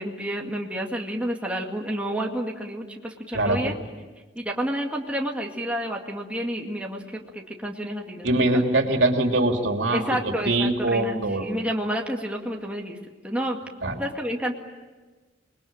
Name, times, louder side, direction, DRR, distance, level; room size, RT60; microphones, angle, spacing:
voice 1, 0.0-3.8 4.4-8.5 9.9-13.0 13.2-13.6 14.0-14.5, equal, 5° right, 0 dB, 2.1 m, -30 dB
voice 2, 8.2-10.0 10.4-11.5 13.8-14.0, right 2 dB, 85° right, 3 dB, 3.0 m, -22 dB
28.0 x 21.0 x 9.0 m, 1.3 s
head